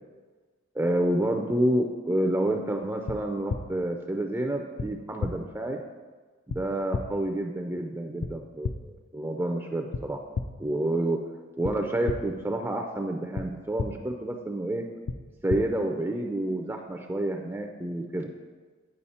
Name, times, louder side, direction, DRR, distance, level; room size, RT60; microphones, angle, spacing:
voice 1, 0.8-5.8 6.5-10.2 10.6-11.2 11.6-14.8 15.4-18.3, right 1 dB, 10° right, 3 dB, 0.4 m, -29 dB
sound 1, 3.1-3.2 3.5-3.6 4.8-4.9 5.2-5.3 6.5-6.6 6.9-7.0 8.2-8.3 8.6-8.7 9.9-10.0 10.3-10.4 11.6-11.7 12.1-12.2 13.3-13.4 13.8-13.9 15.1-15.2 15.5-15.6, left 5 dB, 80° left, 0.4 m, -29 dB
8.9 x 5.0 x 4.2 m, 1.4 s
head